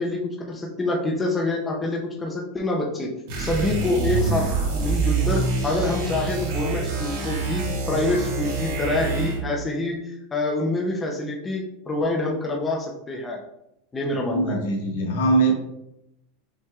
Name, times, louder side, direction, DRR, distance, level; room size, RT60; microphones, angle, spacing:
voice 1, 0.0-3.1 3.4-13.4 13.9-14.6, left 2 dB, 10° left, -1 dB, 0.5 m, -26 dB
sound 1, 3.3-9.5, right 4 dB, 65° right, 1.6 m, -26 dB
voice 2, 4.1-4.4 14.2-15.5, right 2 dB, 80° left, -1 dB, 1.3 m, -22 dB
5.4 x 3.4 x 2.3 m, 0.82 s
supercardioid pair, 165°, 0 cm